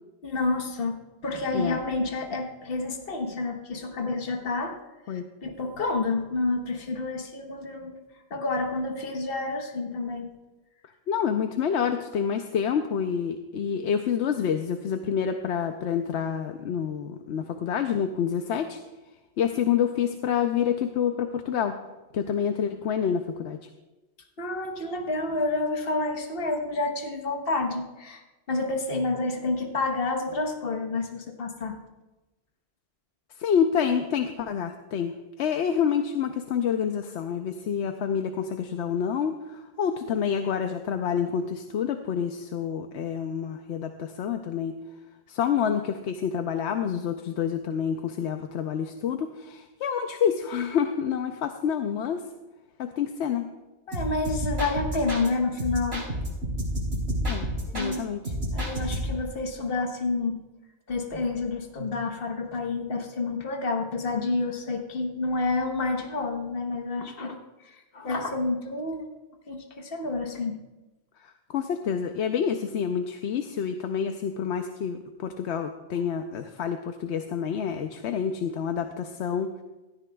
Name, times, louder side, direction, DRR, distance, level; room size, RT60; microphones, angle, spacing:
voice 1, 0.2-4.8 5.1-8.0 8.3-10.3 24.4-31.8 53.9-56.0 57.7-58.0 58.5-60.4 60.9-67.4 67.6-69.1 69.5-70.6, left 3 dB, 60° left, 4 dB, 1.4 m, -29 dB
voice 2, 11.1-18.8 19.4-21.8 22.1-23.6 33.4-44.8 45.3-52.2 52.8-53.5 57.3-57.5 57.7-58.2 71.2-79.5, left 7 dB, 85° left, 6 dB, 0.9 m, -28 dB
sound 1, 53.9-55.3 55.6-58.0 58.2-59.3, equal, 65° right, 3.6 m, -30 dB
16.5 x 13.5 x 2.3 m, 1.1 s
omnidirectional pair, 1.1 m